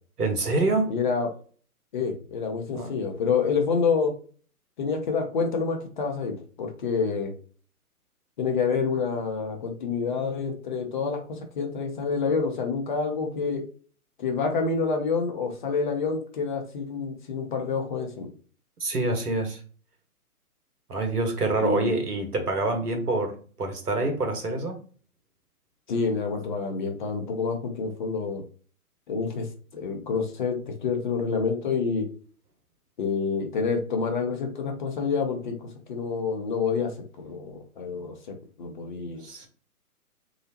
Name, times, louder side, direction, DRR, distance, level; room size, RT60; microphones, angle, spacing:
voice 1, 0.2-0.9 2.7-2.9 18.8-19.6 20.9-24.8 39.2-39.5, right 2 dB, 85° right, 1.2 m, -26 dB
voice 2, 0.9-1.3 1.9-4.1 4.8-7.3 8.4-13.6 14.2-18.3 21.6-21.9 25.9-28.4 29.1-29.5 29.7-32.1 33.0-36.9 37.2-39.2, left 5 dB, 35° left, 0.6 m, -28 dB
3.2 x 2.8 x 2.8 m
figure-of-eight pair, 130°, 45 cm